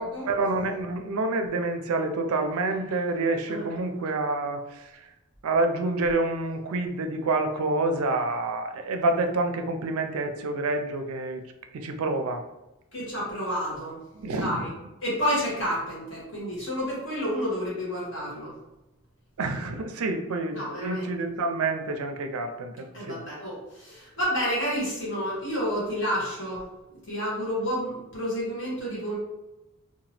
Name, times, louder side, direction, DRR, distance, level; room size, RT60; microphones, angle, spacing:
voice 1, 0.0-5.1 5.4-11.4 11.7-12.4 14.2-14.7 19.4-23.2, right 2 dB, 80° right, 6 dB, 0.4 m, -28 dB
voice 2, 12.9-14.0 14.4-14.7 15.0-18.5 20.5-21.1 22.9-29.2, equal, 55° left, -6 dB, 1.4 m, -30 dB
2.8 x 2.2 x 3.1 m, 0.99 s
head